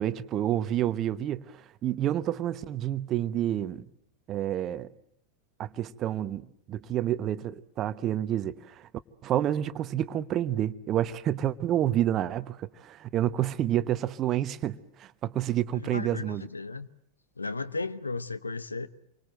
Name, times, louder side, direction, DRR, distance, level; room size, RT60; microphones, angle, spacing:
voice 1, 0.0-1.4 1.8-3.8 4.3-4.9 5.6-8.5 9.2-16.4, right 12 dB, 30° right, 1.0 m, -29 dB
voice 2, 15.7-16.9 17.4-18.9, left 3 dB, 80° left, 1.1 m, -35 dB
28.0 x 24.0 x 7.8 m
figure-of-eight pair, 90°, 0 cm